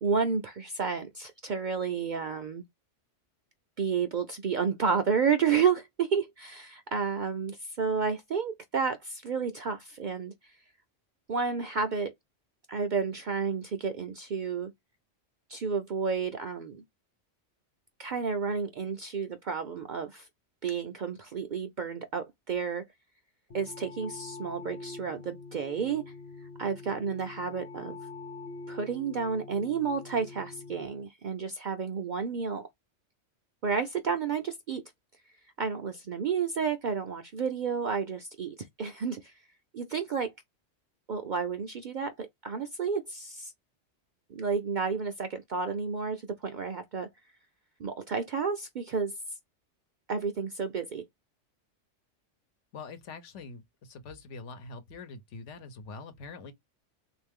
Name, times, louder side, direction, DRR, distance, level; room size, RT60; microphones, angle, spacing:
voice 1, 0.0-2.6 3.8-10.5 11.3-12.1 12.7-14.7 15.5-16.8 18.0-20.3 20.6-22.8 23.5-26.1 26.6-28.0 28.7-32.7 33.6-34.8 35.6-39.3 39.7-40.3 41.1-43.5 44.3-47.1 47.8-49.1 50.1-51.0, right 6 dB, 60° right, 0.5 m, -31 dB
sound 1, 23.5-30.9, left 3 dB, 55° left, 0.8 m, -44 dB
voice 2, 52.7-56.5, left 4 dB, 75° left, 1.1 m, -44 dB
3.6 x 2.5 x 3.5 m
omnidirectional pair, 1.2 m